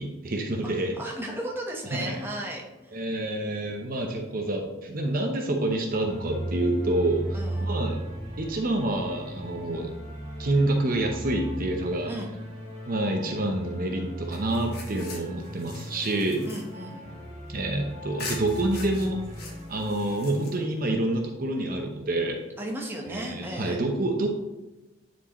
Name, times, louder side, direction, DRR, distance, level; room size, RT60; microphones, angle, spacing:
voice 1, 0.0-1.0 1.9-2.2 2.9-8.0 8.4-9.9 10.4-12.1 12.9-16.5 17.5-19.2 19.7-22.4 23.1-24.3, right 1 dB, 45° right, 3 dB, 0.7 m, -27 dB
voice 2, 1.0-3.0 7.3-7.6 12.1-12.3 16.4-17.1 22.6-23.8, right 1 dB, 10° right, 0 dB, 0.9 m, -35 dB
sound 1, 6.0-20.5, right 1 dB, 25° right, 2.4 m, -37 dB
sound 2, 14.3-17.7 18.2-20.9, left 4 dB, 50° left, 1.1 m, -43 dB
9.9 x 4.5 x 3.0 m, 1.1 s
head